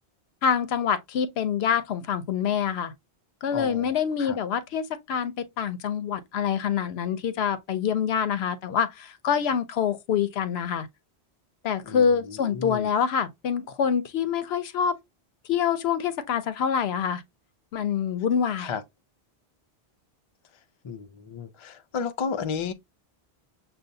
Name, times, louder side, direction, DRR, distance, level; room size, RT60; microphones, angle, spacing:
voice 1, 0.4-2.9 3.4-10.9 11.6-15.0 15.5-17.2 17.7-18.7, left 7 dB, 75° left, 0.8 m, -26 dB
voice 2, 3.5-3.9 4.2-4.4 11.9-12.9 18.6-18.8 20.8-22.7, left 6 dB, 50° left, 0.3 m, -33 dB
6.6 x 2.3 x 2.6 m
omnidirectional pair, 1.1 m